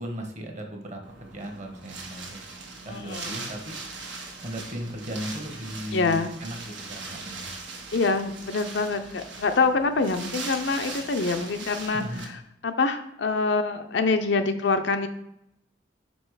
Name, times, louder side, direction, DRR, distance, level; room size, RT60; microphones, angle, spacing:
voice 1, 0.0-2.4 2.8-3.7 4.4-7.5 11.9-12.3, equal, 40° right, 3 dB, 1.2 m, -36 dB
Wind, 1.0-12.2, right 3 dB, 80° right, 1.3 m, -40 dB
voice 2, 2.9-3.3 5.9-6.3 7.9-12.0 12.6-15.1, left 4 dB, 70° left, 7 dB, 0.6 m, -25 dB
5.3 x 4.9 x 4.8 m, 0.79 s
head